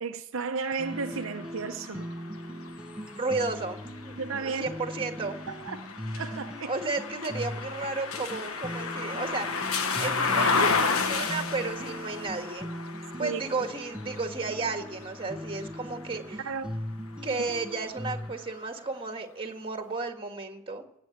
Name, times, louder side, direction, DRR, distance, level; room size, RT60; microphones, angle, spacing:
voice 1, 0.0-2.1 4.2-4.7 5.5-5.8 6.1-6.7 13.2-13.4 16.4-16.7 17.4-17.5, right 5 dB, 65° right, 0.7 m, -33 dB
sound 1, 0.6-16.6 17.1-18.4, left 4 dB, 75° left, 1.3 m, -33 dB
sound 2, 0.8-18.3, equal, 5° right, 0.9 m, -40 dB
voice 2, 3.2-5.4 6.7-12.7 13.2-16.4 17.2-20.8, right 3 dB, 25° right, 1.7 m, -33 dB
18.0 x 8.3 x 8.0 m
head